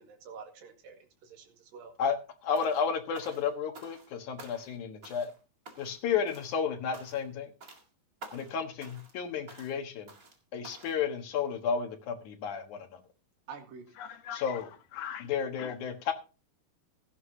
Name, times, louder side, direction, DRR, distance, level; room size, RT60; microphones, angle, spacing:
voice 1, 0.0-1.9 13.5-13.9, right 6 dB, 75° right, 3.6 m, -48 dB
voice 2, 2.4-5.3 5.8-7.5 8.3-10.1 10.5-13.0 14.4-14.6 15.3-16.1, left 6 dB, 60° left, 2.6 m, -32 dB
sound 1, 2.5-2.9 3.1-4.1 4.4-4.8 5.0-5.4 5.7-6.0 6.3-6.6 6.9-7.3 7.6-7.9 8.2-8.5 8.8-9.2 9.5-9.8 10.1-10.4 10.6-11.0, right 2 dB, 30° right, 1.7 m, -50 dB
voice 3, 14.0-15.3 15.6-15.8, left 9 dB, 85° left, 3.2 m, -41 dB
16.5 x 11.5 x 2.8 m
omnidirectional pair, 4.2 m